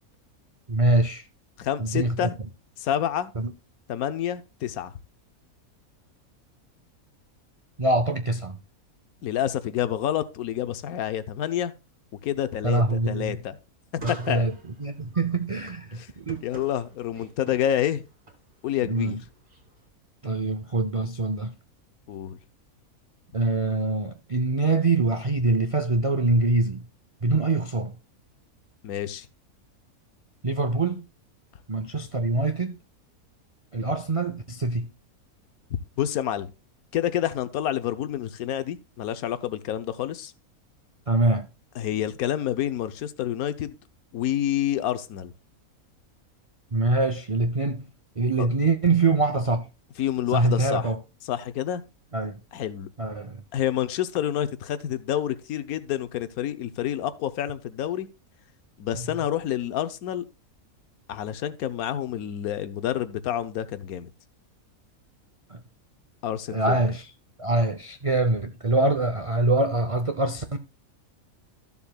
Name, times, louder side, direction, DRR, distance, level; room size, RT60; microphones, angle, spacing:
voice 1, 0.7-1.3 1.8-2.3 3.4-3.5 7.8-8.6 12.6-13.4 14.0-14.5 14.8-16.4 18.8-19.2 20.2-21.5 23.3-26.8 27.2-27.9 30.4-31.0 31.7-32.8 33.7-34.9 41.1-41.5 46.7-47.8 48.2-49.7 50.3-51.0 52.1-52.4 53.0-53.4 59.0-59.1 65.5-65.6 66.5-67.1 67.4-70.6, right 2 dB, 60° right, 0.3 m, -24 dB
voice 2, 1.6-2.4 2.8-3.3 3.9-4.9 9.2-11.7 12.2-13.6 13.9-14.5 16.4-18.0 18.6-19.2 22.1-22.4 28.8-29.3 36.0-36.5 36.9-40.3 41.8-43.7 44.1-45.3 48.4-48.5 50.0-50.9 51.3-51.8 52.5-52.9 53.5-58.1 58.8-60.2 61.1-64.1 66.2-66.8, left 11 dB, 80° left, 1.2 m, -28 dB
sound 1, 13.9-19.9, right 3 dB, 35° right, 2.4 m, -47 dB
13.5 x 7.2 x 2.3 m
omnidirectional pair, 1.5 m